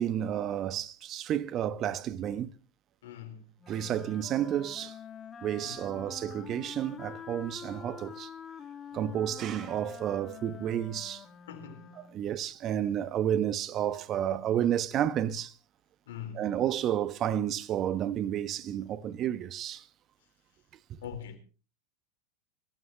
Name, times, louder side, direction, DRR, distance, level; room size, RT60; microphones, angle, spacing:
voice 1, 0.0-2.5 3.7-5.0 5.4-8.3 8.9-11.2 12.1-15.5 16.3-19.8, right 10 dB, 40° right, 1.0 m, -31 dB
voice 2, 3.0-3.5 5.6-6.1 11.5-12.0 16.1-16.5 21.0-21.4, left 9 dB, 75° left, 3.9 m, -43 dB
Wind instrument woodwind instrument, 3.6-12.3, left 7 dB, 25° left, 2.1 m, -47 dB
25.0 x 14.5 x 3.0 m
hypercardioid pair, 100°, 0 cm